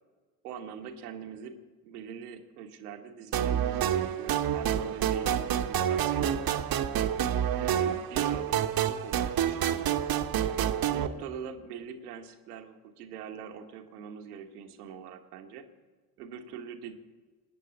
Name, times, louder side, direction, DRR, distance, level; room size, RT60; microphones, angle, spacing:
voice 1, 0.4-6.8 7.5-10.1 10.8-15.6 16.2-16.9, right 7 dB, 85° right, 7 dB, 1.2 m, -43 dB
sound 1, 3.3-11.1, right 9 dB, 50° right, 1.0 m, -28 dB
19.5 x 8.6 x 8.6 m, 1.4 s
hypercardioid pair, 40°, 44 cm